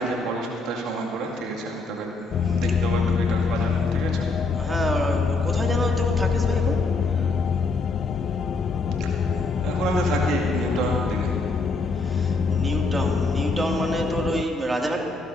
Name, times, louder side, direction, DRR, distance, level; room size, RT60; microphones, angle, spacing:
voice 1, 0.0-2.2 2.4-4.3 9.0-11.3, right 3 dB, 65° right, -1 dB, 2.2 m, -29 dB
sound 1, 2.3-14.4, left 6 dB, 50° left, 0.4 m, -24 dB
voice 2, 4.5-7.3 12.0-15.1, right 2 dB, 20° right, 1 dB, 2.3 m, -28 dB
28.0 x 12.0 x 2.7 m, 2.6 s
hypercardioid pair, 55°, 0 cm